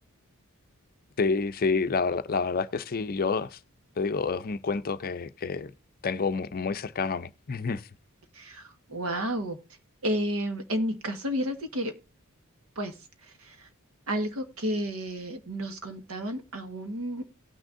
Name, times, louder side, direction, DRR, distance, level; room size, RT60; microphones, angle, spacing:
voice 1, 1.2-3.6 4.0-5.7 6.0-7.9, left 4 dB, 45° left, 0.5 m, -28 dB
voice 2, 8.3-9.6 10.0-11.9 12.7-13.0 13.2-13.7 14.1-17.3, equal, 75° right, 1.4 m, -31 dB
18.0 x 6.3 x 2.5 m
head